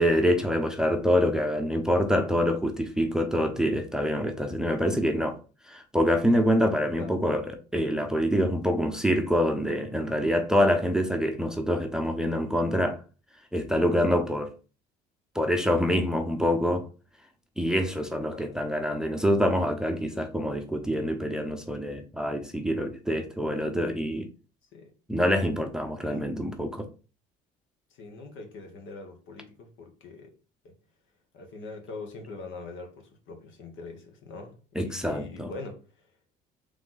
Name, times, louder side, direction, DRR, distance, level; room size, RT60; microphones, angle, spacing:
voice 1, 0.0-5.4 5.7-7.4 7.7-13.0 13.5-14.5 15.3-16.9 17.6-24.3 25.1-26.9 34.7-35.5, equal, 5° right, 0.7 m, -26 dB
voice 2, 27.9-30.3 30.6-30.7 31.3-35.8, left 3 dB, 65° left, 1.4 m, -43 dB
3.5 x 3.3 x 3.9 m
supercardioid pair, 75°, 21 cm